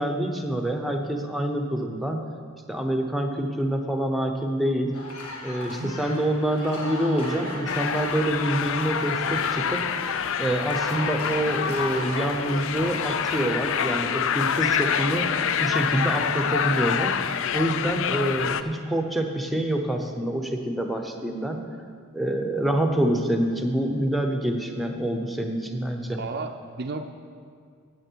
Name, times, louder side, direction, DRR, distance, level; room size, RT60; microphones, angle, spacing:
voice 1, 0.0-2.2 2.7-4.9 5.4-9.8 10.4-15.3 15.6-17.2 17.5-21.6 22.1-26.2, right 1 dB, ahead, 4 dB, 0.7 m, -26 dB
sound 1, 4.9-13.5, left 1 dB, 85° left, 1.5 m, -36 dB
voice 2, 5.6-5.9 26.1-27.1, right 3 dB, 45° right, 5 dB, 0.4 m, -34 dB
sound 2, 7.6-18.6, left 8 dB, 60° left, 0.4 m, -27 dB
13.5 x 8.8 x 4.6 m, 2.1 s
head